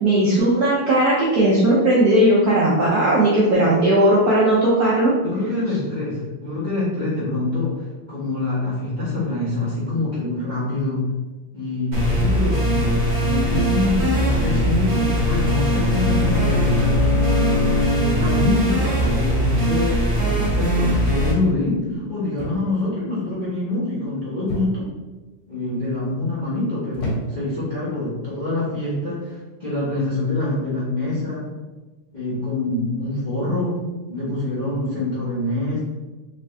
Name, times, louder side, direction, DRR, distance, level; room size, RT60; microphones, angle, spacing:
voice 1, 0.0-5.1 13.5-13.6, right 1 dB, 65° right, -6 dB, 1.0 m, -17 dB
voice 2, 5.2-11.2 11.5-17.1 17.8-24.9 25.5-31.5 32.1-35.8, left 2 dB, 35° left, -9 dB, 0.7 m, -25 dB
sound 1, 11.9-21.3, right 1 dB, 35° right, 0.9 m, -21 dB
Bowed string instrument, 14.9-18.5, left 5 dB, 70° left, 1.3 m, -24 dB
sound 2, 22.4-22.8 23.1-23.5 24.5-25.0 25.7-26.1 26.9-27.6 28.5-28.8, right 1 dB, 85° left, 2.1 m, -32 dB
3.8 x 3.5 x 3.3 m, 1.2 s
omnidirectional pair, 2.4 m